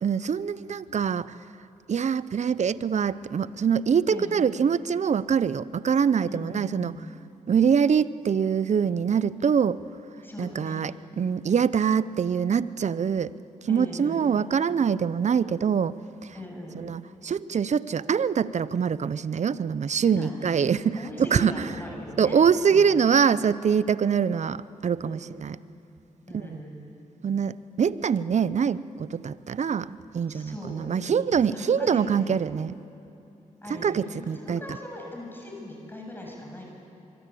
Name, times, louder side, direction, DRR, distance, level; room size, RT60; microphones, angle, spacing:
voice 1, 0.0-1.3 1.9-7.0 7.5-9.8 10.4-13.3 13.6-16.3 16.7-21.7 22.2-25.6 26.3-26.6 27.2-32.8 33.7-34.6, right 7 dB, 55° right, 17 dB, 0.7 m, -24 dB
voice 2, 4.1-4.4 6.3-7.0 10.2-10.8 13.7-14.2 16.3-16.9 20.0-20.5 20.9-22.4 22.7-22.9 25.0-25.2 26.3-26.8 30.3-32.3 33.6-36.7, left 1 dB, 15° left, -1 dB, 7.4 m, -39 dB
24.5 x 23.0 x 8.5 m, 2.8 s
cardioid pair, 55°, 14 cm